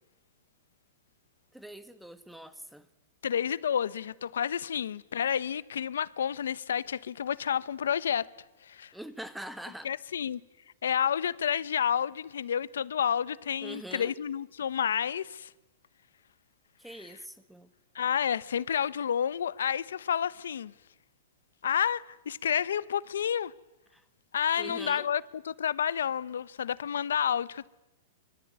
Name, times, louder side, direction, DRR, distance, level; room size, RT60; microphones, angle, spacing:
voice 1, 1.5-2.9 8.9-9.9 13.6-14.1 16.8-17.7 23.9-24.0 24.6-25.1, right 1 dB, ahead, 1.6 m, -43 dB
voice 2, 3.2-8.3 8.6-8.9 9.8-10.4 10.8-15.5 17.9-20.7 21.6-23.5 24.3-27.7, left 8 dB, 85° left, 1.1 m, -30 dB
24.5 x 24.0 x 9.7 m
hypercardioid pair, 140°, 0 cm